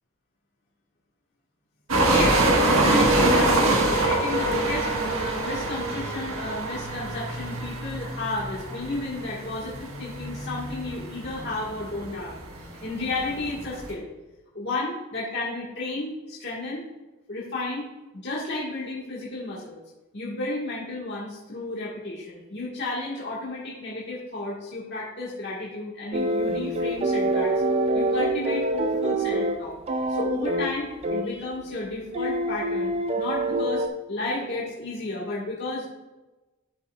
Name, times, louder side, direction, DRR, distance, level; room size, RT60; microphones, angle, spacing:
sound 1, 1.9-13.9, right 2 dB, 75° right, 1.5 m, -25 dB
voice 1, 2.0-2.4 2.8-12.4 12.8-14.1 14.5-16.9 17.3-17.9 18.1-19.8 20.1-27.6 27.9-29.8 30.1-35.8, left 2 dB, 55° left, -6 dB, 1.7 m, -32 dB
sound 2, 26.1-30.7 31.0-31.4 32.1-33.9, right 1 dB, 30° right, 0.4 m, -25 dB
12.5 x 5.6 x 2.4 m, 1.1 s
head